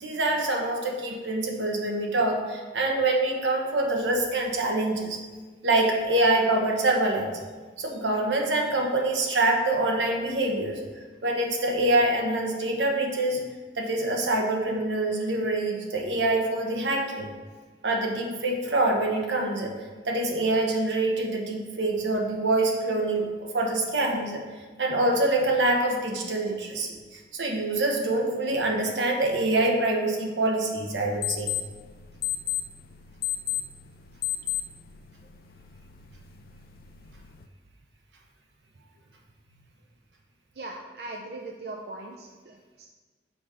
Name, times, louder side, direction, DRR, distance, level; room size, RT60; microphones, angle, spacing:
voice 1, 0.0-5.2 5.6-7.4 7.8-10.8 11.2-13.5 13.8-17.3 17.8-19.7 20.0-23.3 23.5-24.4 24.8-31.5, right 2 dB, 85° right, 1 dB, 1.1 m, -25 dB
sound 1, 30.9-37.5, left 12 dB, 55° left, 0.4 m, -34 dB
voice 2, 40.6-42.9, right 2 dB, 60° right, 1 dB, 0.5 m, -40 dB
6.1 x 5.2 x 4.9 m, 1.4 s
head